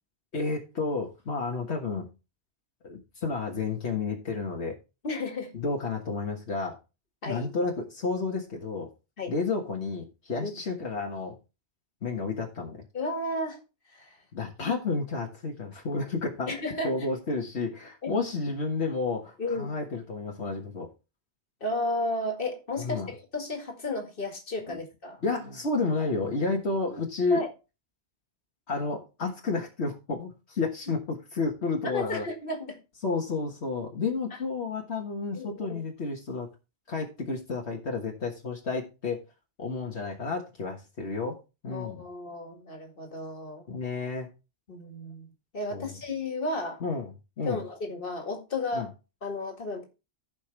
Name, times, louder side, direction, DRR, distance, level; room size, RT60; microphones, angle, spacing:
voice 1, 0.3-2.1 2.8-4.8 5.5-6.8 7.3-8.9 9.3-11.4 12.0-12.8 14.3-16.5 16.8-20.9 22.8-23.1 24.7-24.8 25.2-27.4 28.7-32.3 33.0-36.5 36.9-39.2 39.6-41.4 41.6-42.0 43.7-44.3 45.7-45.9 46.8-47.1 47.4-47.6 48.7-48.9, left 4 dB, 75° left, 1.8 m, -31 dB
voice 2, 5.0-5.5 7.2-7.5 9.2-9.3 10.4-10.5 12.9-13.6 13.9-14.2 14.6-14.8 16.5-17.0 18.0-18.2 19.4-19.7 21.6-25.2 27.3-27.5 30.9-31.0 31.8-32.8 35.3-35.8 41.7-43.6 44.7-45.3 45.5-46.8 47.4-48.9 49.2-49.9, left 2 dB, 55° left, 2.2 m, -33 dB
15.5 x 5.4 x 3.3 m
omnidirectional pair, 1.1 m